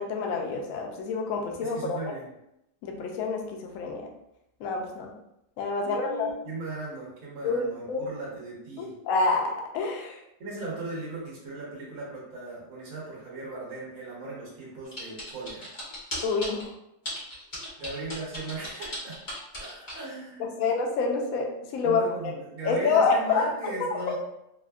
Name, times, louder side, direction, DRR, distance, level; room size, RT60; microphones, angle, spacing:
voice 1, 0.0-2.0 2.8-4.0 4.6-5.1 5.6-6.3 7.4-8.1 8.8-10.2 16.2-16.7 20.6-22.0 22.6-24.0, left 4 dB, 80° left, 1 dB, 0.7 m, -27 dB
voice 2, 1.6-2.3 5.8-8.9 10.4-15.7 17.8-19.2 19.5-20.8 21.8-24.1, right 2 dB, 55° right, -6 dB, 1.4 m, -38 dB
sound 1, 14.9-16.6 17.1-20.0, equal, 40° left, 0.7 m, -36 dB
3.5 x 2.1 x 2.3 m, 0.84 s
omnidirectional pair, 2.0 m